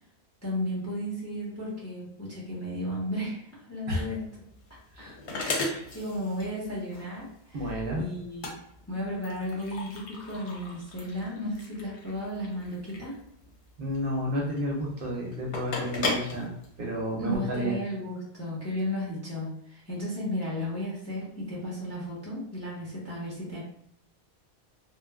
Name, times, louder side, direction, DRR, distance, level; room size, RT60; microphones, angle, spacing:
voice 1, 0.4-4.3 4.7-4.8 5.9-8.5 8.9-13.2 17.2-23.6, left 1 dB, 15° left, -6 dB, 0.6 m, -34 dB
sound 1, 4.1-17.4, left 2 dB, 80° left, 0.9 m, -37 dB
voice 2, 5.5-5.9 7.5-8.0 13.8-16.5 16.8-17.8, equal, 60° right, -1 dB, 0.7 m, -31 dB
3.0 x 2.0 x 2.2 m, 0.71 s
omnidirectional pair, 1.1 m